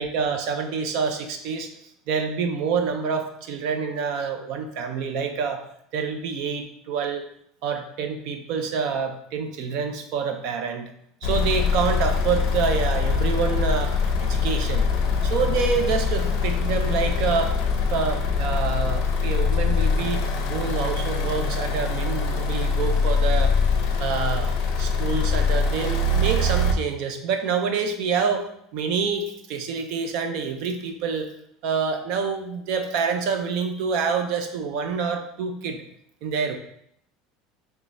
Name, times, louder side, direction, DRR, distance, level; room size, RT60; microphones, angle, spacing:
voice 1, 0.0-1.7 2.1-5.6 5.9-7.2 7.6-10.9 11.2-13.9 14.2-14.9 15.2-17.5 17.9-23.5 24.0-24.5 24.8-31.3 31.6-35.8 36.2-36.6, right 5 dB, 50° right, 6 dB, 0.5 m, -27 dB
sound 1, 11.2-26.7, left 4 dB, 50° left, 0.6 m, -23 dB
5.0 x 3.2 x 2.6 m, 0.72 s
cardioid pair, 180°, 0 cm